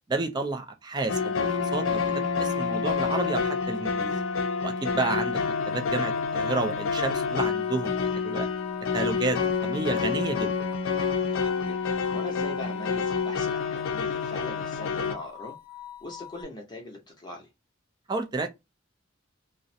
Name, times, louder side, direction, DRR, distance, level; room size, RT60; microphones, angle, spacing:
voice 1, 0.1-4.2 4.6-5.4 5.7-8.5 8.9-10.5 18.1-18.5, right 3 dB, 20° right, 0.3 m, -31 dB
sound 1, 1.1-15.1, left 5 dB, 85° left, 0.4 m, -28 dB
sound 2, 5.3-16.4, left 12 dB, 50° left, 0.9 m, -45 dB
voice 2, 11.3-15.6 16.0-17.5, left 2 dB, 20° left, 0.6 m, -41 dB
2.4 x 2.0 x 2.6 m
head